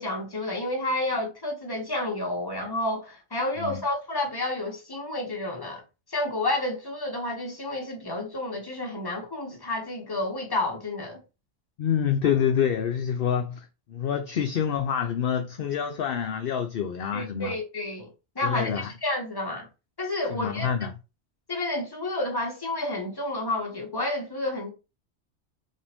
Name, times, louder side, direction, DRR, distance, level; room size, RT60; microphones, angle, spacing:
voice 1, 0.0-5.8 6.1-11.2 17.1-18.1 18.3-19.7 20.0-20.7 21.5-24.7, left 1 dB, 20° left, 1.2 m, -30 dB
voice 2, 11.8-17.5 18.4-18.9 20.3-20.9, left 8 dB, 60° left, 0.7 m, -27 dB
5.4 x 2.5 x 3.5 m
omnidirectional pair, 1.2 m